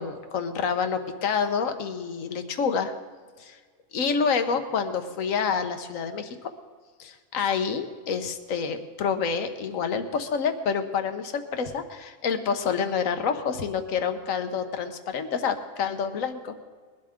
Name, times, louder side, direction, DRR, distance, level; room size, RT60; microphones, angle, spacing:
voice 1, 0.0-2.9 3.4-3.6 3.9-6.4 7.0-16.5, left 6 dB, 80° left, 8 dB, 1.4 m, -28 dB
21.0 x 12.0 x 3.7 m, 1.5 s
omnidirectional pair, 1.4 m